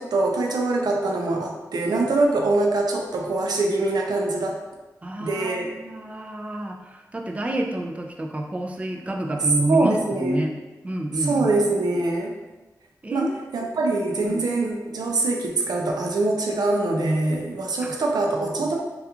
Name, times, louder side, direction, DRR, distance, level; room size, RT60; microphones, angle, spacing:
voice 1, 0.0-4.6 5.2-5.7 9.7-10.4 11.1-12.3 13.1-18.8, right 2 dB, 85° right, 1 dB, 0.4 m, -23 dB
voice 2, 5.0-10.5 10.8-11.5 13.0-13.8 14.3-14.4 17.8-17.9 18.5-18.6, right 1 dB, 20° right, 1 dB, 0.3 m, -28 dB
2.8 x 2.3 x 2.3 m, 1.1 s
wide cardioid pair, 70°, 7 cm